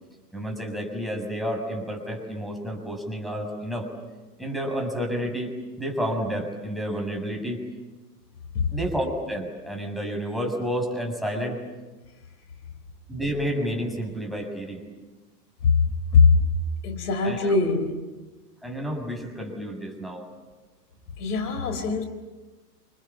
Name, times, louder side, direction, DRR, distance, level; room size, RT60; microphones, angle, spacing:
voice 1, 0.3-3.9 4.4-5.5 5.8-7.6 8.7-11.6 13.1-14.8 17.2-17.6 18.6-20.3, equal, ahead, 2 dB, 7.1 m, -30 dB
voice 2, 16.8-18.0 21.2-22.0, left 5 dB, 65° left, 8 dB, 4.1 m, -21 dB
29.0 x 28.0 x 7.4 m, 1.2 s
figure-of-eight pair, 95°, 49 cm